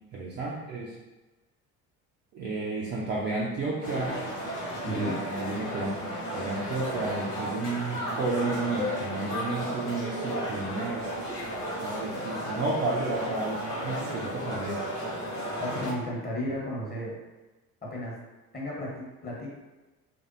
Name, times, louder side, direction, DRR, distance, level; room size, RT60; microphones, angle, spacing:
voice 1, 0.1-1.0 2.3-4.2 4.9-11.0 11.8-14.8, right 3 dB, 25° right, -4 dB, 0.4 m, -32 dB
sound 1, 3.8-15.9, equal, 90° left, 0.8 m, -34 dB
voice 2, 4.8-5.2 15.6-17.1 17.8-18.2 18.5-19.5, equal, 20° left, -4 dB, 1.1 m, -33 dB
3.3 x 2.6 x 2.6 m, 1.1 s
figure-of-eight pair, 60°, 46 cm